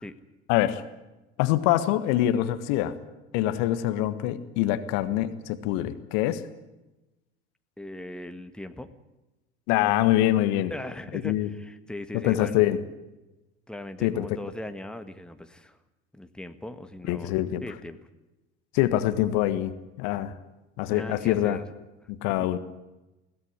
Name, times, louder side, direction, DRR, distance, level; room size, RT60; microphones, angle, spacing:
voice 1, 0.5-0.8 1.4-2.9 3.3-6.4 9.7-10.7 11.2-11.5 12.1-12.8 14.0-14.2 17.1-17.6 18.7-20.3 20.8-21.6 22.1-22.6, left 13 dB, 60° left, 12 dB, 1.6 m, -24 dB
voice 2, 7.8-8.9 10.7-12.6 13.7-15.8 16.1-18.0 20.9-21.6 22.4-22.5, left 1 dB, 5° left, 8 dB, 1.7 m, -39 dB
21.5 x 17.5 x 9.8 m, 1.0 s
figure-of-eight pair, 65°, 32 cm